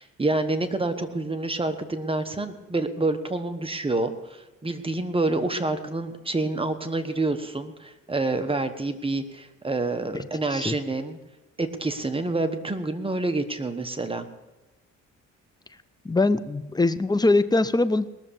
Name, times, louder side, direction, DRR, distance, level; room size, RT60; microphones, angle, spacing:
voice 1, 0.0-11.2 11.6-14.3, right 2 dB, 20° right, 8 dB, 1.2 m, -28 dB
voice 2, 10.1-10.7 16.0-18.1, left 2 dB, 15° left, 13 dB, 0.6 m, -23 dB
20.0 x 6.9 x 7.0 m, 1.1 s
cardioid pair, 90°, 30 cm